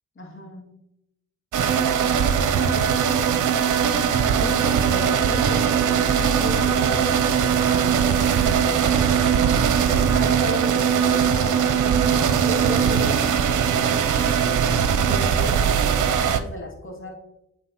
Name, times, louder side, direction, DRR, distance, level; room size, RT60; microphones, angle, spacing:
voice 1, 0.2-0.8 2.6-3.3 4.4-5.8 6.2-9.5 9.8-11.6 12.1-17.1, left 2 dB, 40° left, -1 dB, 2.2 m, -36 dB
sound 1, 1.5-16.4, right 7 dB, 65° right, 0.6 m, -20 dB
8.7 x 3.9 x 2.9 m, 0.84 s
supercardioid pair, 50°, 33 cm